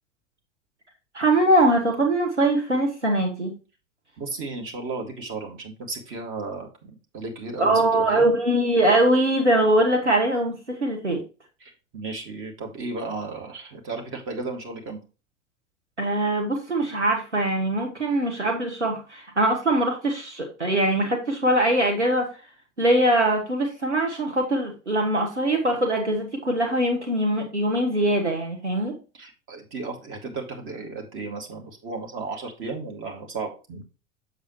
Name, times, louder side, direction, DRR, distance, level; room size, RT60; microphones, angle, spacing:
voice 1, 1.1-3.5 7.6-11.2 16.0-22.3 22.8-29.0, right 1 dB, 85° right, 2 dB, 1.4 m, -22 dB
voice 2, 4.2-8.3 11.6-15.0 29.2-33.8, right 3 dB, 35° right, 2 dB, 2.2 m, -34 dB
7.0 x 7.0 x 3.1 m, 0.32 s
figure-of-eight pair, 80°, 34 cm